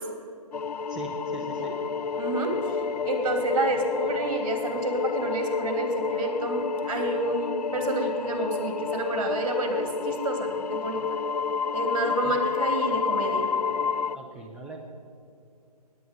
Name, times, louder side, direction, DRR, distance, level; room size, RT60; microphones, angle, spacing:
sound 1, 0.5-14.2, left 5 dB, 85° left, 0.4 m, -30 dB
voice 1, 0.9-1.7 12.2-12.4 14.1-14.8, right 3 dB, 5° right, -1 dB, 0.5 m, -40 dB
voice 2, 2.2-2.8 3.0-11.0 11.7-13.5, right 2 dB, 55° right, 4 dB, 2.9 m, -29 dB
20.0 x 9.2 x 5.2 m, 2.5 s
figure-of-eight pair, 140°, 20 cm